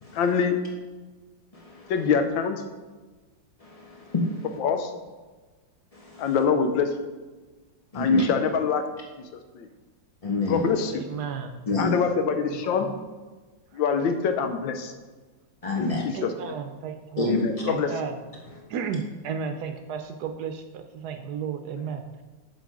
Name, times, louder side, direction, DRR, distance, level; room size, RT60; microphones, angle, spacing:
voice 1, 0.1-0.6 1.9-2.6 4.6-4.9 6.2-6.9 7.9-8.8 9.5-9.7 10.5-11.0 11.8-12.9 13.7-14.9 15.8-16.3 17.3-17.9, left 5 dB, 85° left, 7 dB, 1.5 m, -24 dB
voice 2, 1.5-1.9 3.6-4.6 5.9-6.4 7.9-8.2 10.2-10.7 11.7-12.0 15.6-16.0 17.2-17.6, left 2 dB, 60° left, -2 dB, 0.3 m, -28 dB
voice 3, 10.9-11.6 12.5-13.0 13.7-13.8 15.9-17.3 17.7-18.2 18.7-22.2, right 6 dB, 70° right, 7 dB, 1.0 m, -34 dB
7.9 x 5.1 x 4.8 m, 1.3 s
omnidirectional pair, 2.0 m